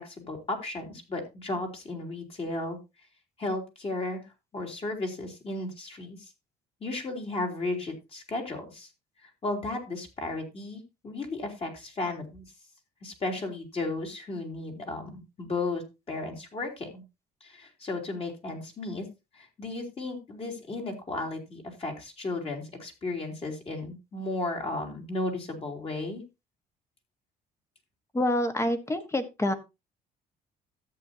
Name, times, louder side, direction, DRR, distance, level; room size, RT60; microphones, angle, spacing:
voice 1, 0.0-2.8 3.4-4.2 4.5-6.3 6.8-8.9 9.2-12.4 13.0-17.0 17.4-19.1 19.3-26.2, left 2 dB, 35° left, 1 dB, 3.4 m, -34 dB
voice 2, 28.1-29.5, left 1 dB, 15° left, 10 dB, 1.3 m, -27 dB
13.0 x 8.3 x 2.8 m, 0.25 s
cardioid pair, 110°, 17 cm